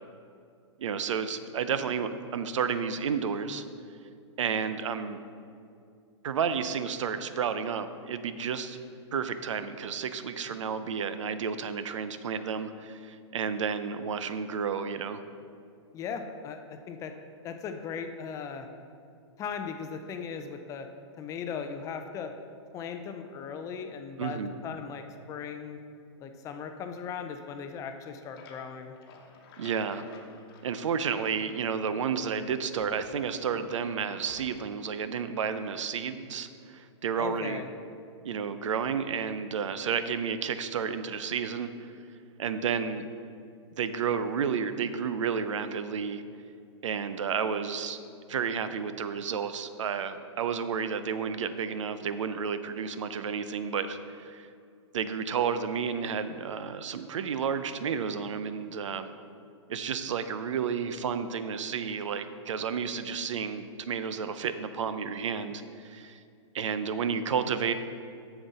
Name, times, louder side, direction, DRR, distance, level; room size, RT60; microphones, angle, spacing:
voice 1, 0.8-3.6 4.4-5.2 6.2-8.8 9.1-15.2 24.2-24.5 29.6-30.0 30.6-37.6 38.2-41.9 42.4-43.0 43.8-46.2 46.8-48.0 48.3-54.5 54.9-59.1 59.7-66.2 66.5-67.7, right 6 dB, 85° right, 11 dB, 0.5 m, -31 dB
voice 2, 15.9-17.1 17.4-18.7 19.4-20.9 21.2-22.3 22.7-25.8 26.2-28.9 37.2-37.7, left 6 dB, 20° left, 7 dB, 0.5 m, -38 dB
sound 1, 27.9-31.8 32.1-33.5 34.3-34.8, left 4 dB, 50° left, 1.0 m, -54 dB
7.2 x 7.0 x 4.1 m, 2.4 s
hypercardioid pair, 140°, 15 cm